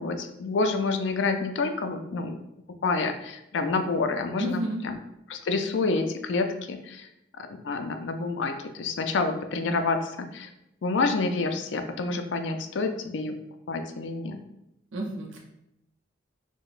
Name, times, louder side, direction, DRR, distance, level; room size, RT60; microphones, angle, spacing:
voice 1, 0.0-2.4 2.8-5.0 5.3-7.1 7.4-10.5 10.8-13.4 13.7-14.4, left 3 dB, 75° left, 6 dB, 0.4 m, -28 dB
voice 2, 4.4-4.8 14.9-15.4, equal, 85° right, 0 dB, 0.6 m, -30 dB
4.7 x 2.1 x 2.4 m, 0.85 s
head